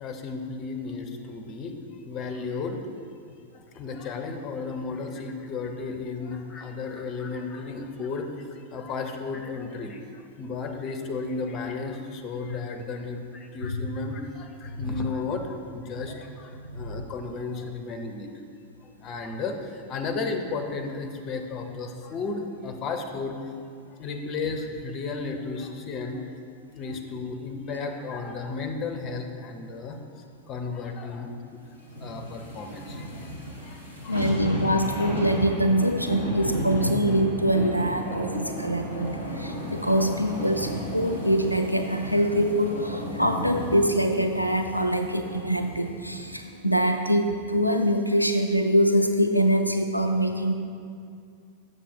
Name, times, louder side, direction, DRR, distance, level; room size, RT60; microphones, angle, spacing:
voice 1, 0.0-1.8 2.0-2.8 3.5-18.3 18.8-26.3 26.7-31.6 32.0-34.3, left 4 dB, 30° left, 5 dB, 0.8 m, -34 dB
voice 2, 16.5-17.0 34.1-50.5, equal, 90° left, 4 dB, 0.4 m, -24 dB
sound 1, 31.8-46.3 46.7-46.8, equal, 80° right, 1.6 m, -33 dB
7.2 x 6.6 x 4.5 m, 2.4 s
figure-of-eight pair, 90°, 0 cm